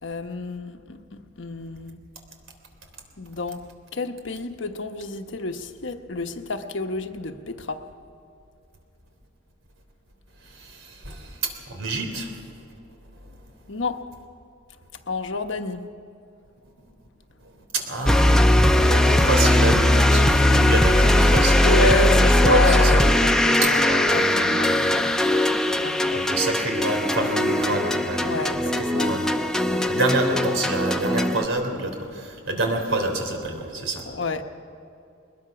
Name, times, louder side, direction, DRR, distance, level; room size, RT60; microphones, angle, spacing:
voice 1, 0.0-2.1 3.2-7.9 13.7-14.1 15.1-15.9 21.6-26.5 27.2-27.3 28.2-29.2 29.6-29.9 34.1-34.4, left 2 dB, 70° left, 7 dB, 1.1 m, -30 dB
voice 2, 10.5-12.3 13.2-13.3 17.4-23.1 23.6-24.9 26.1-29.3 29.6-34.1, right 2 dB, 80° right, 4 dB, 3.4 m, -27 dB
sound 1, 18.1-31.5, left 1 dB, 5° left, 0.7 m, -19 dB
21.5 x 20.5 x 5.9 m, 2.6 s
head